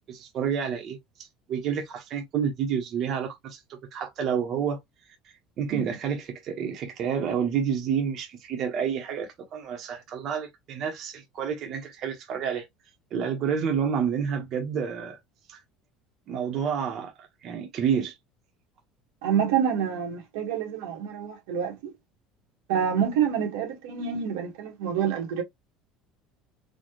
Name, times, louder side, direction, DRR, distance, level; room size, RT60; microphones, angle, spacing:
voice 1, 0.1-1.0 1.5-3.6 3.9-4.8 5.6-12.7 13.1-15.2 15.5-15.6 16.3-17.1 17.4-18.2, right 7 dB, 45° right, 1.1 m, -29 dB
voice 2, 19.2-21.9 22.7-25.4, right 8 dB, 90° right, 1.7 m, -27 dB
4.3 x 2.5 x 3.2 m
cardioid pair, 140°, 0 cm